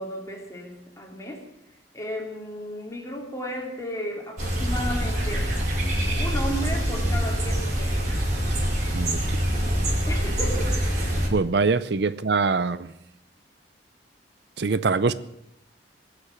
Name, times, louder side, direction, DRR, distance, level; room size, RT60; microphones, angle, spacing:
voice 1, 0.0-1.5 1.9-5.5 6.1-8.1 10.0-11.0, equal, 15° left, 1 dB, 3.1 m, -34 dB
sound 1, 4.4-11.3, equal, 45° right, 4.7 m, -25 dB
voice 2, 11.3-12.9 14.6-15.1, right 4 dB, 65° right, 16 dB, 0.6 m, -23 dB
19.5 x 6.9 x 9.7 m, 0.81 s
head